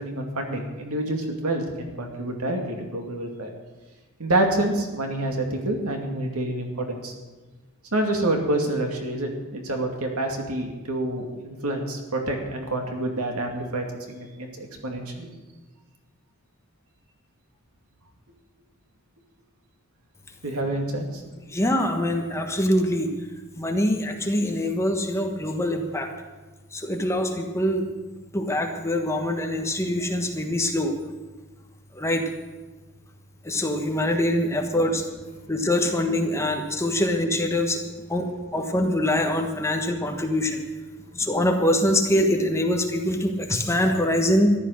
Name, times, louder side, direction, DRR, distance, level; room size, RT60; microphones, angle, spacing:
voice 1, 0.0-3.5 4.2-7.1 7.9-15.3 20.4-21.2, right 1 dB, 90° right, 2 dB, 2.4 m, -27 dB
voice 2, 21.5-23.1 23.6-26.1 26.7-27.8 28.3-30.9 31.9-32.2 33.4-35.1 35.5-37.8 38.1-40.6 41.1-44.5, left 1 dB, 15° left, 3 dB, 1.3 m, -24 dB
14.0 x 11.0 x 6.5 m, 1.3 s
head